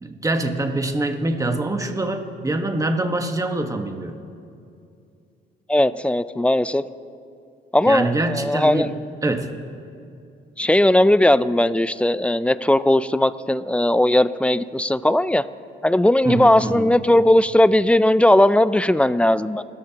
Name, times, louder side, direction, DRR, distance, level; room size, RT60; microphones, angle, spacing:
voice 1, 0.0-4.2 7.9-8.9 9.2-9.5 16.2-16.9, right 2 dB, 15° right, 5 dB, 1.4 m, -24 dB
voice 2, 5.7-6.8 7.7-8.9 10.6-15.4 15.8-19.6, left 1 dB, 5° left, 15 dB, 0.5 m, -18 dB
30.0 x 14.5 x 3.0 m, 2.5 s
cardioid pair, 90°, 20 cm